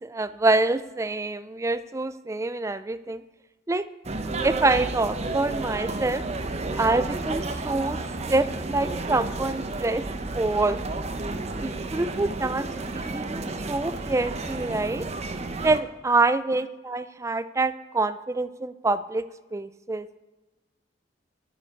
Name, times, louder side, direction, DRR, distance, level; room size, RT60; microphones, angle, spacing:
voice 1, 0.0-3.2 3.7-3.9 4.4-6.2 6.7-8.0 8.3-10.0 10.3-10.8 11.6-13.4 13.7-15.1 15.6-19.2 19.5-20.1, right 2 dB, 15° right, 14 dB, 0.4 m, -26 dB
sound 1, 4.0-15.8, right 2 dB, 35° right, 0.8 m, -32 dB
9.9 x 6.8 x 8.4 m, 1.1 s
head